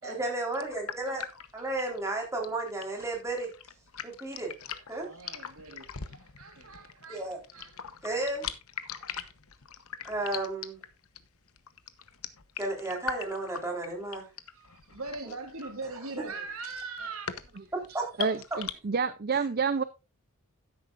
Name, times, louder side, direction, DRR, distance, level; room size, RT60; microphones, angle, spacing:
voice 1, 0.0-1.3 1.5-3.5 4.0-4.5 4.9-5.1 7.1-7.4 8.0-8.5 10.0-10.8 12.6-14.2 17.7-18.1 19.3-19.4, right 2 dB, 15° right, 3.9 m, -33 dB
sound 1, 0.5-18.7, left 8 dB, 75° left, 1.1 m, -41 dB
voice 2, 4.7-7.8 14.5-17.3, right 3 dB, 75° right, 3.4 m, -41 dB
voice 3, 18.2-19.8, right 5 dB, 45° right, 0.5 m, -28 dB
12.5 x 11.0 x 2.5 m
head